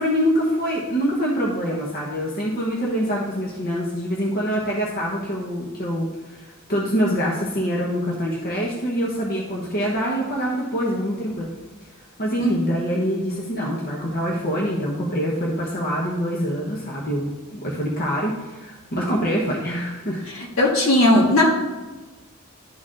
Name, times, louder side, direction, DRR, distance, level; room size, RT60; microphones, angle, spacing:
voice 1, 0.0-11.5 12.2-20.2, equal, 45° left, -4 dB, 1.0 m, -25 dB
voice 2, 20.6-21.5, left 1 dB, 75° left, -3 dB, 1.7 m, -16 dB
12.0 x 4.1 x 2.5 m, 1.2 s
head